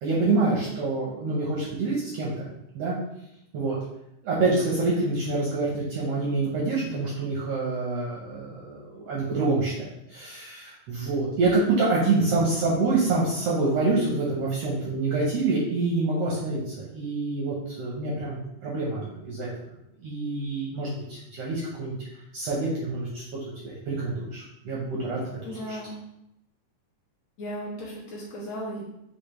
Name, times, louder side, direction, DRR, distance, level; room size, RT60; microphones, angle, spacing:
voice 1, 0.0-2.5 2.7-3.0 3.5-3.8 4.2-19.5 20.0-22.0 22.3-23.2 23.6-25.2, right 3 dB, 70° right, -5 dB, 1.5 m, -26 dB
voice 2, 12.2-12.6 25.5-26.0 27.4-28.8, equal, 60° left, -7 dB, 2.2 m, -36 dB
6.4 x 2.7 x 3.0 m, 0.82 s
omnidirectional pair, 3.6 m